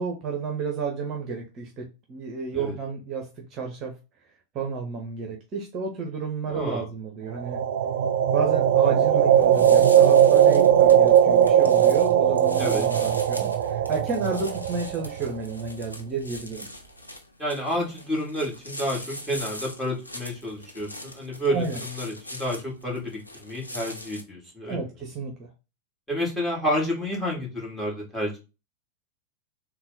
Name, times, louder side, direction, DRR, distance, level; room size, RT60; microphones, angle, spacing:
voice 1, 0.0-3.9 4.5-7.6 8.3-16.7 21.5-21.8 24.7-25.5, right 5 dB, 30° right, 2 dB, 0.9 m, -31 dB
voice 2, 6.5-6.9 12.6-12.9 17.4-24.8 26.1-28.4, equal, 5° left, -3 dB, 2.2 m, -30 dB
sound 1, 7.4-15.4, right 9 dB, 60° right, 0.4 m, -19 dB
sound 2, 9.3-24.2, left 1 dB, 85° left, 0.6 m, -41 dB
3.9 x 2.3 x 4.0 m, 0.28 s
figure-of-eight pair, 90°, 0 cm